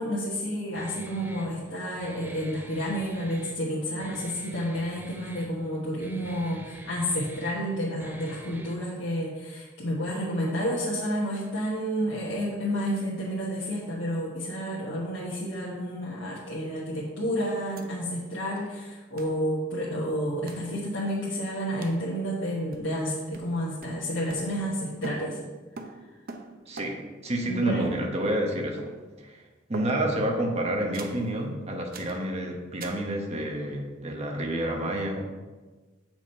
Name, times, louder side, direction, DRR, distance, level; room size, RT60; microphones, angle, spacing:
voice 1, 0.0-25.4 27.5-27.9, equal, 70° left, -7 dB, 1.3 m, -30 dB
Guitar, 0.7-8.7, right 1 dB, 10° right, 0.6 m, -47 dB
sound 1, 17.8-17.9 18.1-18.2 19.2-19.4 20.5-20.7 21.8-22.1 22.7-23.1 23.3-24.8 25.0-27.2 27.8-28.5 28.8-29.2 29.7-30.2 30.9-31.3 31.9-32.2 32.8-33.1, right 3 dB, 50° right, 0.6 m, -43 dB
voice 2, 26.7-27.0 27.2-28.9 29.2-29.4 29.7-35.3, right 1 dB, 35° right, 1 dB, 1.2 m, -29 dB
7.3 x 6.1 x 4.3 m, 1.3 s
head